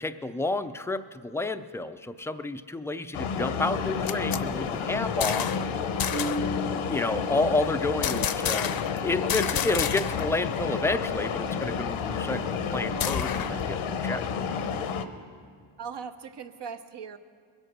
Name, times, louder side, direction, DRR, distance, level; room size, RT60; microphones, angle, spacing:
voice 1, 0.0-5.5 6.9-8.7 9.0-14.5, left 2 dB, 5° left, 10 dB, 0.4 m, -30 dB
sound 1, 3.1-15.0, left 6 dB, 90° left, 1.0 m, -30 dB
sound 2, 3.8-5.7 6.0-6.5 8.0-9.0 9.3-10.4 10.6-10.7 11.1-13.7, left 9 dB, 50° left, 0.6 m, -31 dB
Marimba xylophone, 6.1-8.1, equal, 10° right, 0.9 m, -36 dB
voice 2, 8.2-8.7 15.8-17.2, right 6 dB, 60° right, 8 dB, 1.0 m, -40 dB
22.0 x 8.2 x 6.0 m, 2.2 s
cardioid pair, 105°, 48 cm